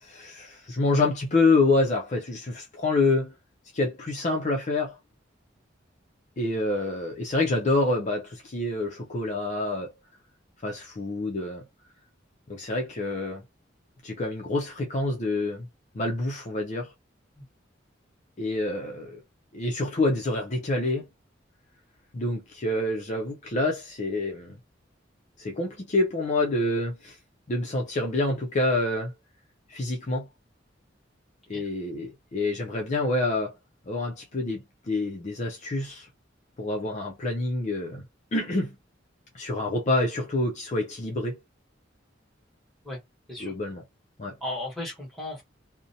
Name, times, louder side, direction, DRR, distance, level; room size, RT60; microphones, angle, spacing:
voice 1, 0.0-3.3 3.7-5.0 6.4-9.9 10.6-11.7 12.5-13.4 14.0-15.7 15.9-16.9 18.4-19.2 19.5-21.1 22.1-24.6 25.4-27.2 27.5-29.1 29.7-30.3 31.5-33.6 33.9-36.1 36.6-38.0 38.3-38.8 39.3-41.4 43.4-43.8 44.2-44.3, left 2 dB, 40° left, 0.5 m, -27 dB
voice 2, 44.4-45.4, left 1 dB, ahead, 1.2 m, -35 dB
2.6 x 2.1 x 2.7 m
head